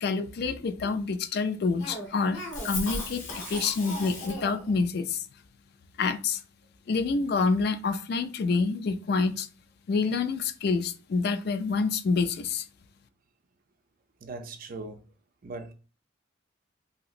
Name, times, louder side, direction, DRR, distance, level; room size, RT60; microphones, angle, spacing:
voice 1, 0.0-5.3 6.0-6.4 6.9-9.5 9.9-12.7, left 4 dB, 55° left, 0.3 m, -27 dB
Cough, 1.8-4.7, left 2 dB, 80° left, 1.2 m, -36 dB
voice 2, 3.4-3.7 14.2-15.0 15.4-15.7, right 3 dB, 45° right, 0.5 m, -40 dB
2.9 x 2.8 x 2.4 m
head